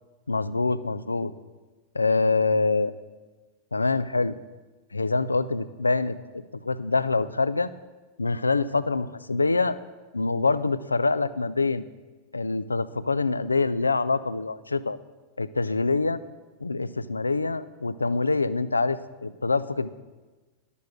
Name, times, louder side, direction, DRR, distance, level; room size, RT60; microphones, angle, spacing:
voice 1, 0.3-1.3 1.9-2.9 3.7-4.4 4.9-6.2 6.6-7.7 8.2-9.8 10.1-11.9 12.3-15.0 15.4-16.2 16.6-19.9, left 3 dB, 80° left, 15 dB, 0.4 m, -25 dB
11.5 x 6.8 x 6.3 m, 1.3 s
figure-of-eight pair, 90°, 0 cm